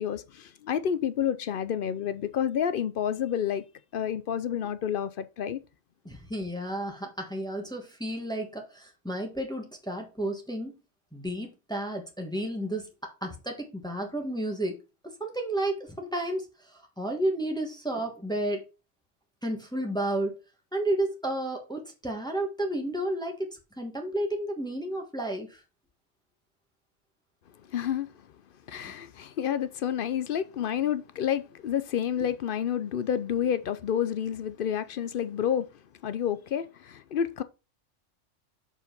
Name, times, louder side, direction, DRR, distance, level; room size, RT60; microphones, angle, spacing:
voice 1, 0.0-3.6 3.9-5.6 27.6-28.3 28.7-37.4, left 9 dB, 60° left, 0.6 m, -29 dB
voice 2, 6.0-10.8 11.1-12.9 13.2-14.8 15.0-18.6 19.4-20.3 20.7-23.5 23.8-25.6 28.8-28.9, right 1 dB, 5° left, 1.5 m, -32 dB
6.8 x 5.0 x 5.2 m
omnidirectional pair, 1.2 m